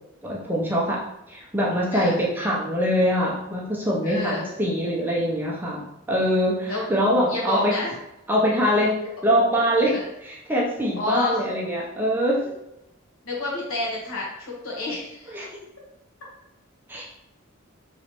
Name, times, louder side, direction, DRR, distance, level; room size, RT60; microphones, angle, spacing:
voice 1, 0.2-1.0 1.3-7.7 8.3-8.9 9.2-10.0 10.2-12.4 15.3-15.5 16.9-17.0, equal, 10° right, -4 dB, 0.5 m, -23 dB
voice 2, 4.0-4.5 6.7-6.8 7.3-7.9 9.9-10.1 11.0-11.4 13.2-15.4, left 2 dB, 80° left, -4 dB, 1.2 m, -29 dB
3.2 x 3.0 x 2.9 m, 0.89 s
head